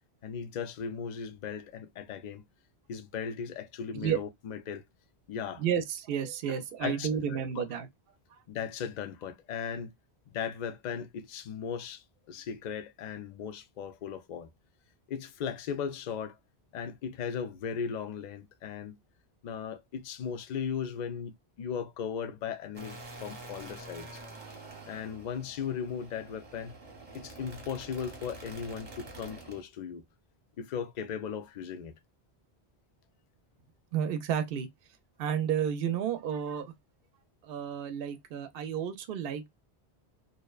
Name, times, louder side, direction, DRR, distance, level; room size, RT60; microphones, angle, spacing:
voice 1, 0.2-2.5 2.9-4.8 5.3-5.6 6.5-7.1 7.6-7.7 8.5-9.9 10.3-14.5 15.1-16.4 16.7-19.0 19.4-24.2 24.8-26.8 27.1-30.0 30.6-31.9, left 7 dB, 55° left, 0.5 m, -37 dB
voice 2, 5.6-7.9 33.9-34.7 35.2-36.7 37.4-39.5, right 8 dB, 65° right, 0.7 m, -31 dB
sound 1, 22.7-29.6, right 2 dB, 40° right, 0.9 m, -47 dB
2.6 x 2.1 x 2.2 m
omnidirectional pair, 1.1 m